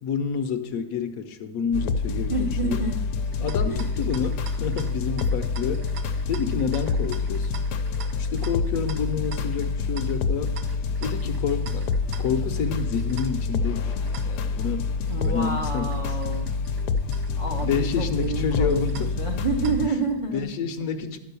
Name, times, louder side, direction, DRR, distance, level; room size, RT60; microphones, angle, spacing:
voice 1, 0.0-2.3 2.6-2.8 3.4-5.9 6.3-7.6 8.2-10.5 11.0-11.9 12.2-13.9 14.3-14.9 15.2-16.0 17.6-19.1 20.3-21.2, left 6 dB, 65° left, 9 dB, 1.1 m, -29 dB
sound 1, 1.7-19.9, left 4 dB, 90° left, 1.2 m, -27 dB
voice 2, 2.3-3.1 3.4-3.9 15.1-16.5 17.4-20.5, right 3 dB, 40° right, 2 dB, 0.5 m, -29 dB
sound 2, 3.2-20.1, right 7 dB, 85° right, 1.3 m, -47 dB
11.5 x 5.1 x 6.8 m, 0.95 s
omnidirectional pair, 1.7 m